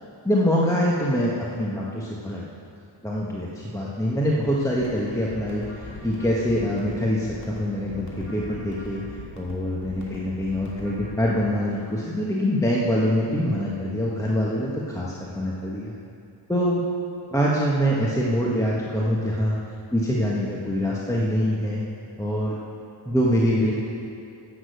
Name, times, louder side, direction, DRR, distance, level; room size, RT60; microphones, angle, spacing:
voice 1, 0.2-2.4 3.0-9.0 9.4-15.9 16.5-16.8 17.3-19.6 19.9-21.8 22.2-22.6 23.1-23.7, equal, 5° left, -5 dB, 1.3 m, -24 dB
sound 1, 4.8-11.2, left 2 dB, 35° left, 2.7 m, -41 dB
11.0 x 7.1 x 8.0 m, 2.6 s
wide cardioid pair, 65°, 49 cm